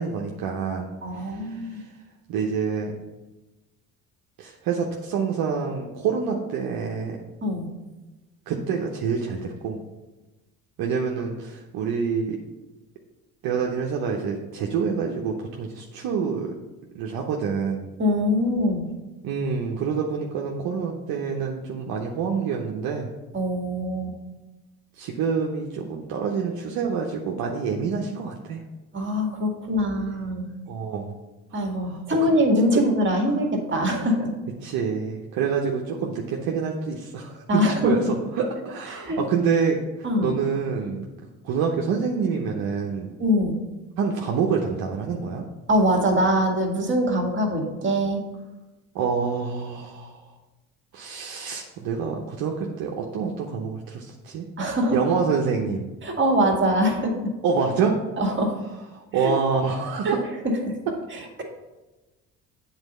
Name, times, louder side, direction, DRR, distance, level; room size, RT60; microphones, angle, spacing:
voice 1, 0.0-1.9 2.3-2.9 4.4-7.2 8.5-9.8 10.8-12.4 13.4-16.5 16.9-17.9 19.2-23.1 25.0-28.6 30.7-31.1 31.5-32.3 32.7-32.8 34.6-41.0 41.4-43.1 44.0-45.4 48.9-50.2 50.9-54.5 54.9-55.8 57.4-58.0 58.9-60.2, right 6 dB, 60° right, 0 dB, 0.9 m, -27 dB
voice 2, 1.0-1.8 7.4-7.7 18.0-18.8 23.3-24.2 28.9-30.5 31.5-34.3 37.5-38.1 38.9-39.2 40.0-40.3 43.2-43.5 45.7-48.2 54.6-55.0 56.0-57.1 58.2-58.5 59.2-59.3 60.0-60.2 60.4-60.8 61.1-61.4, equal, 30° right, 2 dB, 1.9 m, -23 dB
8.0 x 4.1 x 5.5 m, 1.1 s
hypercardioid pair, 60°, 40 cm